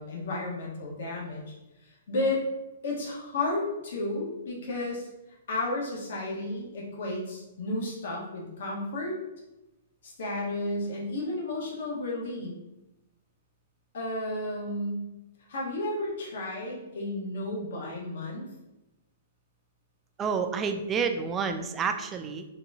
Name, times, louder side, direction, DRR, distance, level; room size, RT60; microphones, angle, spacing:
voice 1, 0.0-1.5 1.8-2.4 2.8-5.1 5.5-9.2 10.0-12.5 13.9-15.0 15.5-18.5, left 2 dB, 65° left, -3 dB, 1.3 m, -32 dB
voice 2, 20.2-22.5, right 5 dB, 15° right, 7 dB, 0.3 m, -29 dB
4.1 x 3.5 x 2.7 m, 0.96 s
hypercardioid pair, 150°, 0 cm